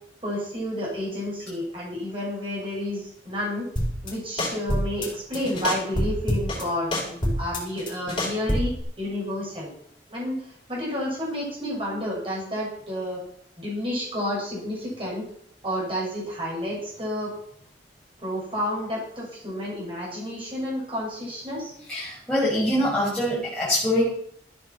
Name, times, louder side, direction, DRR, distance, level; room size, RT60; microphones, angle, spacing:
voice 1, 0.2-3.7 4.0-9.7 10.1-13.2 13.6-15.3 15.6-17.3 18.2-21.7, left 1 dB, 30° right, -5 dB, 7.2 m, -30 dB
sound 1, 3.8-4.1 4.4-5.1 5.3-6.6 6.9-8.8, equal, 30° left, 4.9 m, -26 dB
voice 2, 21.9-24.0, left 1 dB, 5° left, -10 dB, 5.8 m, -24 dB
14.0 x 10.5 x 5.8 m, 0.67 s
head